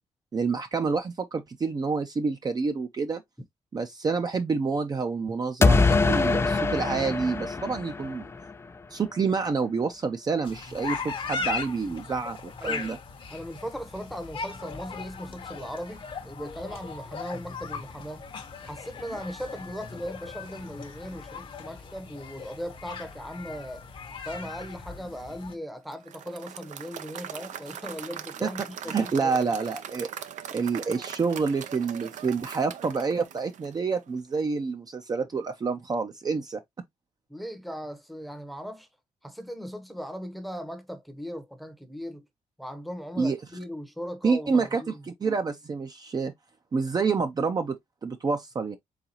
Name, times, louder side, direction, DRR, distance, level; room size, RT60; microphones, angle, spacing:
voice 1, 0.3-3.2 3.7-8.3 8.9-13.0 28.4-28.5 28.9-30.1 30.5-36.6 43.2-43.4 44.2-46.3 46.7-47.8 48.0-48.8, right 4 dB, 30° right, 0.5 m, -28 dB
sound 1, 5.6-8.5, left 3 dB, 20° left, 0.4 m, -23 dB
sound 2, 10.4-25.5, left 5 dB, 40° left, 0.9 m, -38 dB
voice 2, 12.6-13.0 13.3-18.2 18.6-23.9 24.2-29.4 37.3-38.9 39.2-42.2 42.6-45.0, equal, ahead, 0.8 m, -38 dB
Applause / Crowd, 25.9-34.1, right 9 dB, 75° right, 0.6 m, -41 dB
4.0 x 3.8 x 2.8 m
cardioid pair, 125°, 13 cm